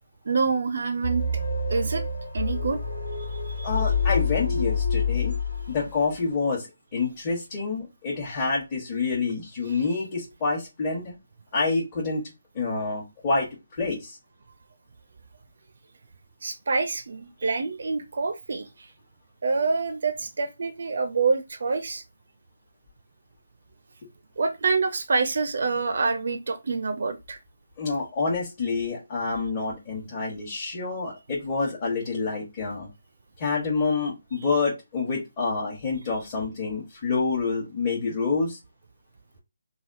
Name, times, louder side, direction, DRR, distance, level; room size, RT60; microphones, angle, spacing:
voice 1, 0.3-1.4 1.7-2.0 2.3-2.8 3.2-3.7 16.4-18.7 19.4-22.0 24.4-27.4, right 4 dB, 60° right, 0.4 m, -26 dB
sound 1, 1.0-6.0, left 4 dB, 80° left, 1.6 m, -27 dB
voice 2, 3.6-5.3 5.7-11.2 11.5-12.2 12.5-13.5 13.7-14.2 27.8-32.9 33.4-38.6, left 4 dB, 30° left, 1.0 m, -27 dB
3.3 x 2.3 x 2.5 m
figure-of-eight pair, 150°, 0 cm